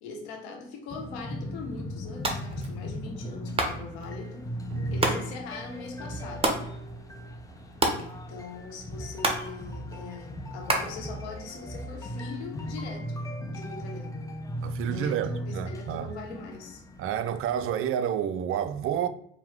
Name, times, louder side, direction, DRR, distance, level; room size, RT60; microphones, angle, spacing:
voice 1, 0.0-4.5 4.9-6.6 7.9-14.3 14.8-16.8, left 3 dB, 80° left, 1.0 m, -41 dB
sound 1, 0.9-17.7, equal, 10° left, 0.6 m, -38 dB
sound 2, 2.1-11.9, right 2 dB, 15° right, 0.9 m, -33 dB
voice 2, 4.7-5.0 14.6-16.1 17.0-19.1, right 9 dB, 45° right, 0.4 m, -30 dB
4.5 x 2.2 x 3.5 m
hypercardioid pair, 65°, 32 cm